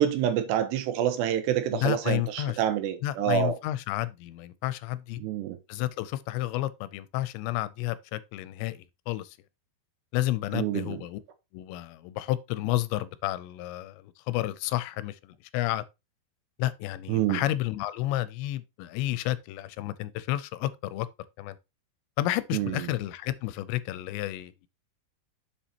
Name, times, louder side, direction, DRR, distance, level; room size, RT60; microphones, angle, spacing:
voice 1, 0.0-3.6 5.2-5.6 10.5-11.0 17.1-17.4 22.5-22.9, right 10 dB, 80° right, 2.8 m, -27 dB
voice 2, 1.7-2.6 3.0-5.2 5.7-9.4 10.1-11.2 11.5-15.8 16.6-21.1 21.4-21.6 22.2-24.7, left 15 dB, 85° left, 2.8 m, -31 dB
7.2 x 7.0 x 2.8 m
omnidirectional pair, 5.1 m